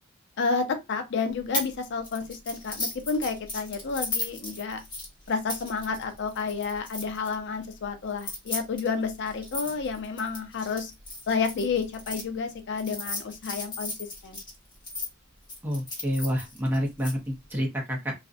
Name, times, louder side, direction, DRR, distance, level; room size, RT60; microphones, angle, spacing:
voice 1, 0.4-4.8 5.3-10.9 11.3-14.4, left 5 dB, 55° left, 0.5 m, -30 dB
sound 1, 1.5-1.7 2.0-7.3 8.1-12.2 12.8-15.1 15.5-17.1, left 2 dB, 20° left, 0.9 m, -35 dB
voice 2, 15.6-18.1, equal, 10° right, 0.6 m, -28 dB
2.4 x 2.1 x 2.4 m
head